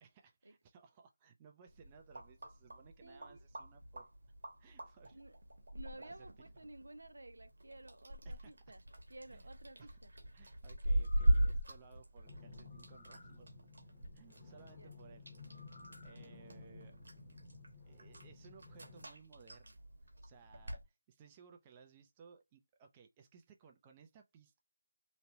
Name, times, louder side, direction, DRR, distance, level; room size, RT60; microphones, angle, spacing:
voice 1, 0.0-4.1 4.6-5.2 6.0-6.3 8.2-8.6 9.3-9.5 9.8-10.0 10.3-13.5 14.1-15.3 15.7-17.0 17.9-19.8 20.2-24.6, right 6 dB, 15° right, 0.4 m, -61 dB
sound 1, 1.7-20.8, right 1 dB, 65° right, 1.0 m, -40 dB
voice 2, 3.0-3.4 5.1-5.4 5.7-8.8 9.1-10.1 14.8-15.0, right 2 dB, 85° right, 0.4 m, -54 dB
sound 2, 10.9-11.7 12.7-13.4 15.5-16.2 16.6-16.7, left 2 dB, 45° left, 0.6 m, -59 dB
sound 3, 12.2-19.1, left 3 dB, 15° left, 0.8 m, -55 dB
3.0 x 2.1 x 2.8 m
figure-of-eight pair, 165°, 0 cm